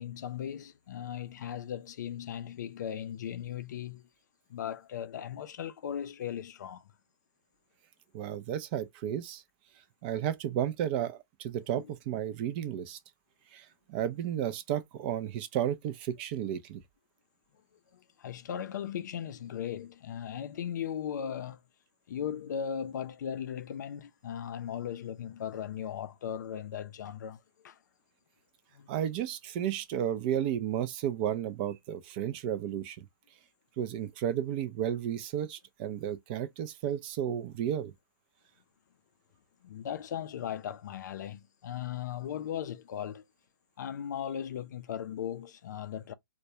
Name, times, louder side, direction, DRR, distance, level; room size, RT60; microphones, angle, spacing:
voice 1, 0.0-4.1 4.5-6.9 11.7-11.9 17.9-21.6 22.1-27.8 28.7-28.9 39.6-43.2 43.8-46.1, left 9 dB, 55° left, 0.4 m, -37 dB
voice 2, 8.1-9.4 10.0-13.0 13.5-16.8 28.9-33.1 33.8-37.9, right 10 dB, 30° right, 0.4 m, -33 dB
2.2 x 2.1 x 2.7 m
hypercardioid pair, 140°, 12 cm